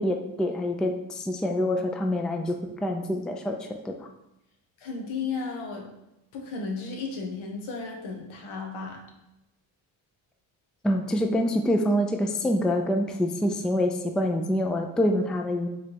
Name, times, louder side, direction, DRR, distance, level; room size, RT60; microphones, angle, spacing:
voice 1, 0.0-4.1 10.8-15.7, left 1 dB, ahead, 4 dB, 0.3 m, -26 dB
voice 2, 4.8-5.9 6.3-9.0, left 4 dB, 75° left, 1 dB, 1.1 m, -34 dB
4.8 x 3.3 x 2.9 m, 0.91 s
supercardioid pair, 65°, 48 cm